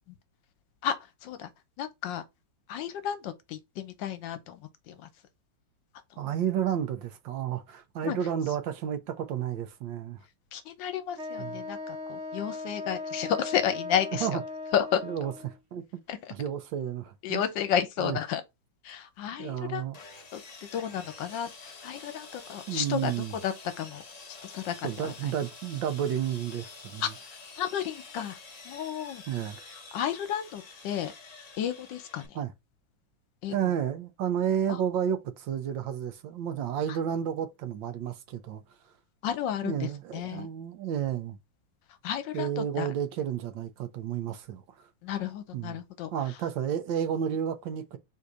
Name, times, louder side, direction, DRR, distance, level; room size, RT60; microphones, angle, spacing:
voice 1, 1.8-2.2 2.7-5.1 8.0-8.2 10.5-14.4 14.7-15.0 16.1-16.3 17.2-18.4 18.8-19.8 20.3-24.0 24.4-25.3 27.0-27.1 27.6-28.4 28.6-29.2 29.9-31.1 31.6-32.4 33.4-33.6 34.7-34.8 39.2-40.5 42.0-42.9 45.0-46.1, left 9 dB, 80° left, 1.4 m, -32 dB
voice 2, 6.2-10.2 11.4-11.6 14.2-14.4 15.0-16.0 16.3-17.4 18.0-18.2 19.4-20.0 22.7-23.4 24.8-27.1 29.3-29.6 32.3-32.5 33.5-38.6 39.6-41.4 42.3-44.6 45.5-45.8 46.1-48.0, right 9 dB, 80° right, 1.5 m, -31 dB
Wind instrument woodwind instrument, 11.2-15.6, left 3 dB, 45° right, 1.2 m, -38 dB
Sawing, 19.9-32.3, left 4 dB, 45° left, 0.5 m, -48 dB
4.0 x 2.8 x 4.7 m
omnidirectional pair, 2.0 m